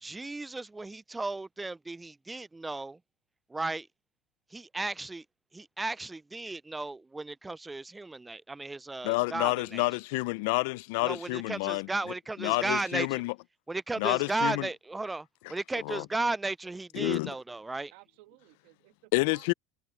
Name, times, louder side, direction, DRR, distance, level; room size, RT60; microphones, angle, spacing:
voice 1, 0.0-3.0 3.5-3.9 4.5-5.2 5.5-9.8 11.0-13.2 13.7-17.9, right 2 dB, 10° right, 0.3 m, -35 dB
voice 2, 9.0-11.9 12.4-13.3 14.0-14.7 15.8-16.1 16.9-17.3 19.1-19.5, left 25 dB, 70° left, 0.4 m, -29 dB
voice 3, 17.9-19.5, right 21 dB, 70° right, 2.1 m, -57 dB
supercardioid pair, 120°, 0 cm